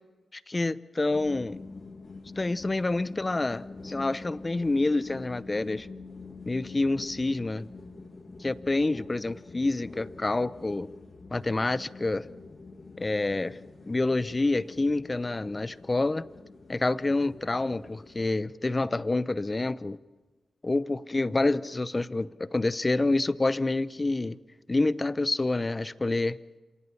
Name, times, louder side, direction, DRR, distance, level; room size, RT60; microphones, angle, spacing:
voice 1, 0.3-1.6 2.4-5.9 6.5-7.7 8.4-10.9 11.3-12.3 13.0-13.6 13.9-16.3 16.7-20.0 20.6-24.4 24.7-26.4, left 2 dB, 30° left, 18 dB, 0.7 m, -27 dB
sound 1, 1.1-18.3, left 3 dB, 45° left, 2.2 m, -46 dB
26.5 x 18.5 x 7.1 m, 1.3 s
cardioid pair, 60°, 0 cm